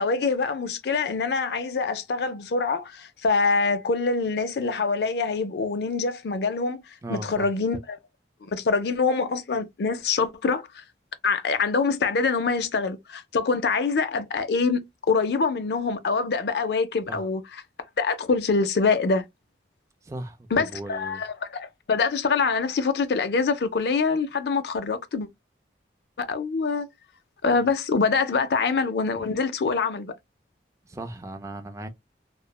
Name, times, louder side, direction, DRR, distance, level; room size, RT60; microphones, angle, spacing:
voice 1, 0.0-6.8 7.1-8.0 8.5-10.6 11.2-17.6 18.0-19.2 20.5-25.3 26.2-26.9 27.4-30.1, left 4 dB, 65° left, 0.4 m, -25 dB
voice 2, 7.0-7.5 17.1-17.2 20.0-21.2 27.5-27.7 30.8-31.9, right 2 dB, 15° right, 0.3 m, -37 dB
3.0 x 2.0 x 2.2 m
head